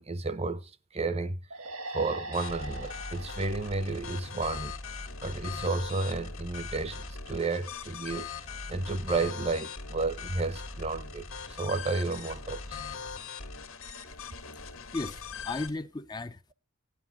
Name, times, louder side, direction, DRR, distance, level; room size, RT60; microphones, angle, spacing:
voice 1, 0.0-1.4 1.9-4.7 5.2-8.3 8.7-12.8, right 3 dB, 30° right, 0.7 m, -32 dB
sound 1, 1.5-5.0, right 1 dB, 90° right, 2.0 m, -42 dB
sound 2, 2.3-15.7, left 5 dB, 80° left, 1.8 m, -40 dB
voice 2, 14.1-16.5, left 2 dB, 20° left, 0.5 m, -37 dB
16.5 x 9.6 x 2.6 m
head